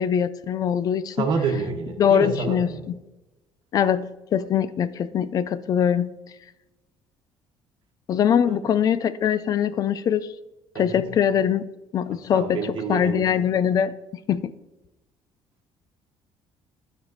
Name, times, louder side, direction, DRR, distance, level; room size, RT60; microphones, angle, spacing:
voice 1, 0.0-1.3 2.0-3.0 3.7-6.2 8.1-10.3 10.8-11.7 11.9-14.5, left 8 dB, 40° left, 16 dB, 0.4 m, -23 dB
voice 2, 1.2-2.8 8.5-8.6 10.7-11.1 12.1-13.4, right 5 dB, 50° right, 0 dB, 1.4 m, -28 dB
12.5 x 5.2 x 4.1 m, 1.0 s
cardioid pair, 170°, 10 cm